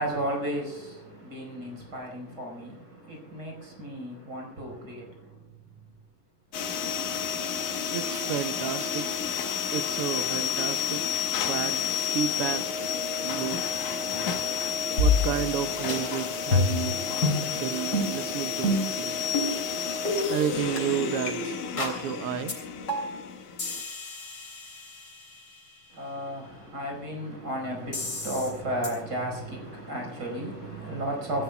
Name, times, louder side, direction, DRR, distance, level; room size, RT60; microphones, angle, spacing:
voice 1, 0.0-5.5 25.9-31.4, right 1 dB, 35° right, 5.5 m, -34 dB
sound 1, 6.5-23.8, left 7 dB, 85° left, 2.8 m, -31 dB
voice 2, 7.9-9.1 9.7-11.0 11.5-11.9 12.1-12.7 13.2-13.8 15.0-17.0 17.5-19.1 20.3-22.5, right 10 dB, 80° right, 1.3 m, -32 dB
sound 2, 15.0-15.6 15.9-16.0 16.5-16.9 17.2-17.4 17.9-18.1 18.6-18.9 19.3-19.5 20.1-20.2 20.8-20.9 21.3-21.4 21.8-22.0 22.5-22.6 22.9-23.2 23.6-25.4 27.9-28.5 28.8-28.9, left 2 dB, 35° left, 3.8 m, -27 dB
26.5 x 15.5 x 2.3 m
omnidirectional pair, 3.3 m